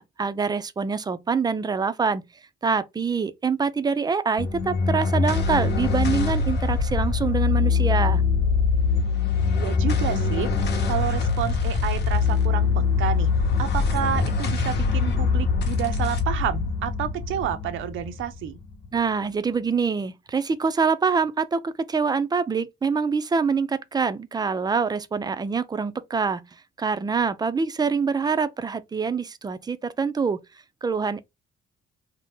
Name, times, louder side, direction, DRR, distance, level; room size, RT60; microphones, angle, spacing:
voice 1, 0.0-2.2 2.6-8.2 18.9-26.4 26.8-30.4 30.8-31.2, right 5 dB, 20° right, 0.3 m, -25 dB
sound 1, 4.4-19.0, left 5 dB, 60° left, 0.8 m, -23 dB
voice 2, 9.5-10.5 10.9-13.3 13.6-18.6, right 10 dB, 85° right, 0.5 m, -30 dB
2.7 x 2.0 x 3.4 m
cardioid pair, 90°, 20 cm